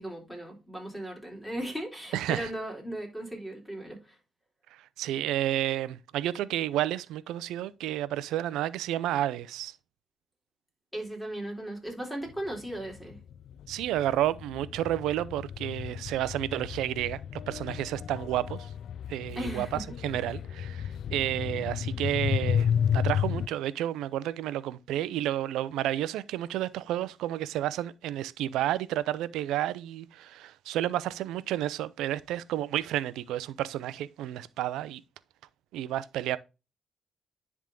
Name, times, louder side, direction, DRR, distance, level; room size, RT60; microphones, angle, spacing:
voice 1, 0.0-4.2 10.9-13.2 19.4-19.8, right 1 dB, 5° left, 3.5 m, -37 dB
voice 2, 2.1-2.5 4.7-9.7 13.7-18.7 19.1-19.7 20.0-35.0 35.7-36.4, right 13 dB, 90° right, 0.5 m, -31 dB
sound 1, 12.3-12.4 12.7-23.5, left 8 dB, 65° left, 0.3 m, -32 dB
10.0 x 3.6 x 3.8 m
cardioid pair, 90°, 0 cm